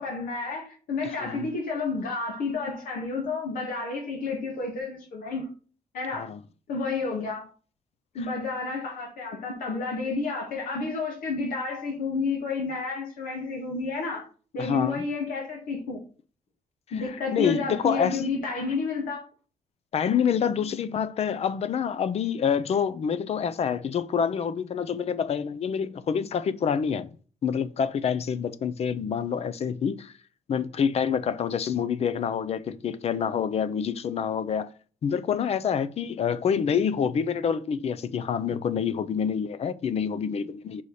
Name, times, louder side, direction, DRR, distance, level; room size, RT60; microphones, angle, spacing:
voice 1, 0.0-5.5 5.9-6.3 6.7-7.5 8.1-14.3 14.5-16.0 16.9-19.3, left 4 dB, 80° left, 1.9 m, -30 dB
voice 2, 1.0-1.4 6.1-6.4 14.6-15.1 17.0-18.3 19.9-27.1 27.4-30.1 30.5-34.7 35.0-40.8, left 7 dB, 45° left, 0.5 m, -27 dB
5.5 x 4.8 x 4.1 m
cardioid pair, 140°, 14 cm